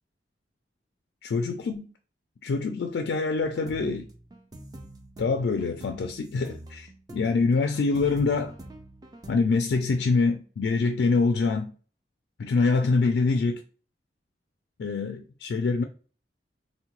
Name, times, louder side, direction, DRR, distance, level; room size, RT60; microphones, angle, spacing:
voice 1, 1.2-1.9 2.4-4.1 5.2-6.9 7.1-8.5 9.3-11.7 12.4-13.6 14.8-15.8, left 4 dB, 70° left, 0.3 m, -25 dB
sound 1, 3.4-9.3, right 1 dB, 20° right, 0.4 m, -45 dB
3.6 x 2.1 x 2.9 m
head